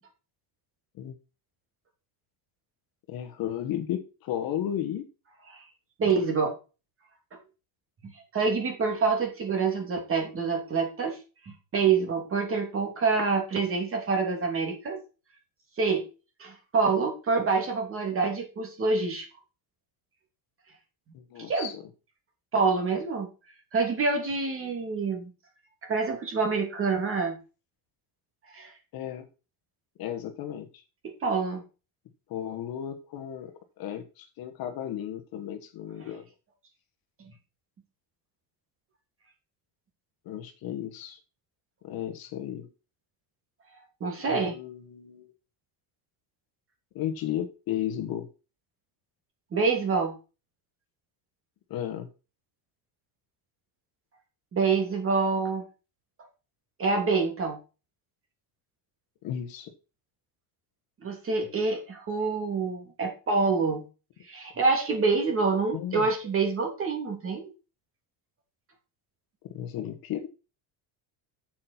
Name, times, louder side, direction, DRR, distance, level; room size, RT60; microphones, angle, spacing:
voice 1, 3.1-5.1 21.1-21.8 28.9-29.3 30.0-30.8 32.3-36.2 40.2-41.2 41.8-42.7 44.3-45.3 46.9-48.3 51.7-52.1 59.2-59.7 65.7-66.1 69.5-70.3, left 10 dB, 50° left, 6 dB, 1.4 m, -34 dB
voice 2, 6.0-6.6 8.3-11.2 11.7-15.0 15.8-16.1 16.4-19.3 21.5-21.7 22.5-23.3 23.7-25.3 25.9-27.4 28.5-28.7 31.0-31.6 44.0-44.6 49.5-50.2 54.5-55.6 56.8-57.6 61.0-63.8 64.3-67.5, right 4 dB, 25° right, 3 dB, 2.9 m, -26 dB
8.5 x 7.7 x 4.4 m, 0.31 s
cardioid pair, 170°, 47 cm